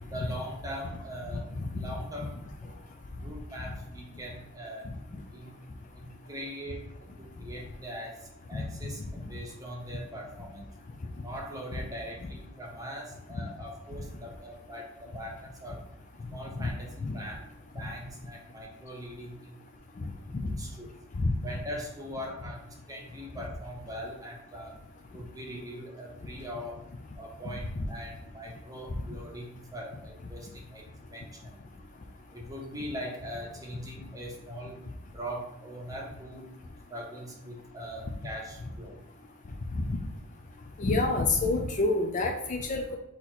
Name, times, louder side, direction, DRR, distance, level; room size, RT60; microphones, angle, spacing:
voice 1, 0.0-2.7 3.2-4.9 5.3-5.6 5.9-10.7 11.2-15.8 16.3-17.4 17.7-19.6 20.4-20.9 21.4-24.7 25.1-26.8 27.2-31.6 32.3-34.8 35.1-36.5 36.9-39.0, equal, 15° right, -1 dB, 0.8 m, -41 dB
voice 2, 40.8-43.0, left 2 dB, 35° left, 3 dB, 0.4 m, -27 dB
4.2 x 2.9 x 3.9 m, 0.81 s
head